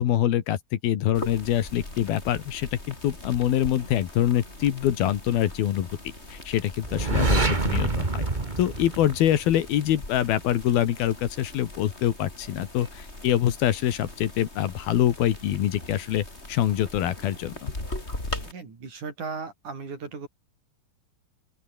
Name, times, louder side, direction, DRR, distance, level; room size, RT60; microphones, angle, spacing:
voice 1, 0.0-5.9 6.3-8.3 8.6-17.7, left 11 dB, 80° left, 3.6 m, -25 dB
sound 1, 1.1-18.5, left 2 dB, 15° left, 5.9 m, -40 dB
sound 2, 6.8-9.7, right 3 dB, 20° right, 1.4 m, -26 dB
voice 2, 18.4-20.3, right 4 dB, 55° right, 6.3 m, -36 dB
open air
omnidirectional pair, 4.3 m